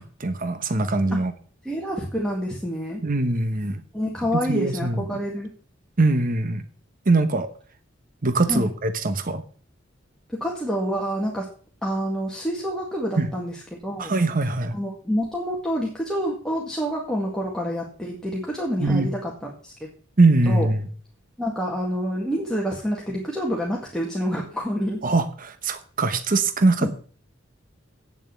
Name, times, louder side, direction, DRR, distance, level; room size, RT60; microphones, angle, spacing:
voice 1, 0.0-1.3 3.0-3.8 4.3-5.2 6.0-6.6 7.1-7.5 8.2-9.4 13.2-13.3 14.0-14.8 18.8-19.1 20.2-20.9 25.0-26.9, right 2 dB, 45° right, 10 dB, 1.0 m, -22 dB
voice 2, 1.7-3.0 3.9-5.5 8.5-8.7 10.4-11.5 11.8-13.5 13.8-14.1 14.7-19.9 20.5-20.7 21.4-25.0 26.8-26.9, equal, 5° left, -3 dB, 1.9 m, -27 dB
8.8 x 7.2 x 8.3 m, 0.43 s
head